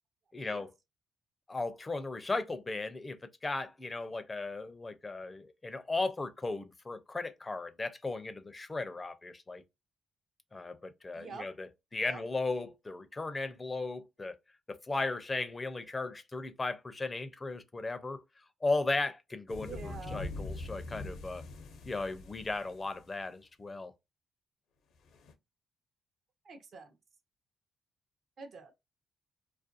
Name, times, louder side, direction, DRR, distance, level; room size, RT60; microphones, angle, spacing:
voice 1, 0.3-0.7 1.5-9.6 10.5-14.4 14.7-18.2 18.6-21.4 21.9-23.9, left 3 dB, 25° left, 0.4 m, -36 dB
voice 2, 11.1-11.5 12.0-12.2 19.6-20.3 26.4-26.9 28.4-28.7, right 5 dB, 55° right, 0.6 m, -46 dB
sound 1, 19.5-23.2 25.1-25.3, left 2 dB, 75° left, 0.5 m, -43 dB
2.4 x 2.1 x 2.5 m
cardioid pair, 90°, 0 cm